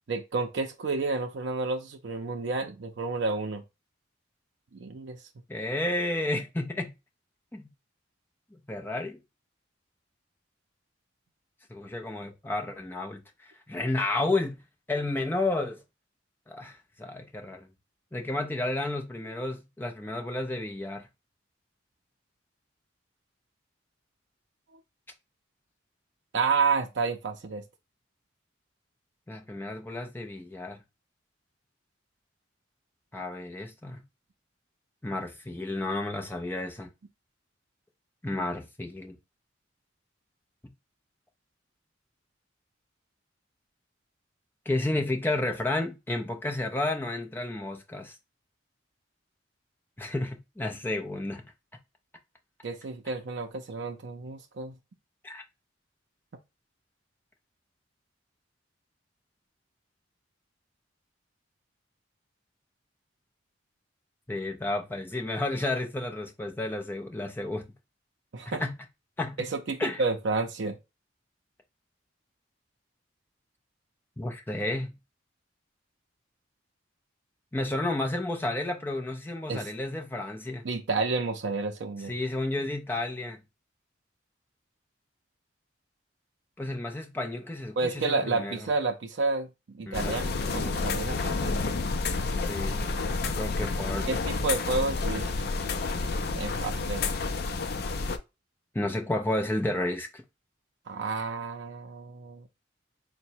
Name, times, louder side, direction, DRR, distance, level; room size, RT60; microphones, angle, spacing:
voice 1, 0.1-3.6 4.7-5.2 26.3-27.6 52.6-54.7 68.3-68.6 69.4-70.8 79.5-79.7 80.6-82.1 87.8-91.6 94.1-95.3 96.4-97.1 100.9-102.4, right 3 dB, 65° right, 0.5 m, -30 dB
voice 2, 5.5-6.9 7.5-7.7 8.7-9.2 11.7-14.6 14.9-15.8 16.5-17.7 18.1-21.1 29.3-30.8 33.1-34.0 35.0-36.9 38.2-39.2 44.7-48.1 50.0-51.4 55.2-55.4 64.3-67.7 68.5-68.9 69.2-69.5 69.8-70.0 74.2-75.0 77.5-80.7 82.1-83.4 86.6-88.6 89.9-90.3 92.3-94.1 98.7-100.2, left 2 dB, 10° left, 0.6 m, -32 dB
sound 1, 89.9-98.2, left 3 dB, 55° left, 0.5 m, -30 dB
3.9 x 2.1 x 4.4 m
head